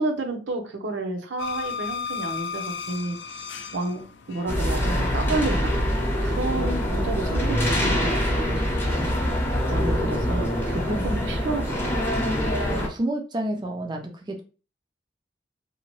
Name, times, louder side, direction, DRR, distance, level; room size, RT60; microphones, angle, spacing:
voice 1, 0.0-4.0 4.3-9.2 9.7-12.2, right 2 dB, 80° right, 3 dB, 0.7 m, -31 dB
sound 1, 1.4-8.2, left 6 dB, 70° left, 0.4 m, -37 dB
sound 2, 4.5-12.9, equal, 15° left, 0.7 m, -24 dB
voice 2, 10.9-11.4 12.7-14.4, right 1 dB, 25° right, 3 dB, 0.4 m, -30 dB
2.8 x 2.1 x 2.9 m, 0.34 s
head